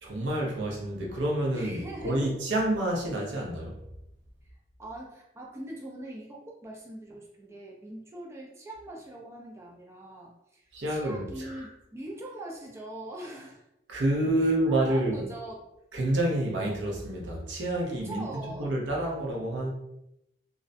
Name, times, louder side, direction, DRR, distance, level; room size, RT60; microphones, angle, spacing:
voice 1, 0.0-3.8 10.7-11.7 13.9-15.3 15.9-19.7, right 1 dB, 85° right, -1 dB, 0.6 m, -28 dB
voice 2, 1.5-2.4 4.8-13.6 14.4-15.7 17.9-18.7, right 1 dB, 15° right, -2 dB, 0.3 m, -42 dB
2.4 x 2.1 x 2.5 m, 0.85 s
head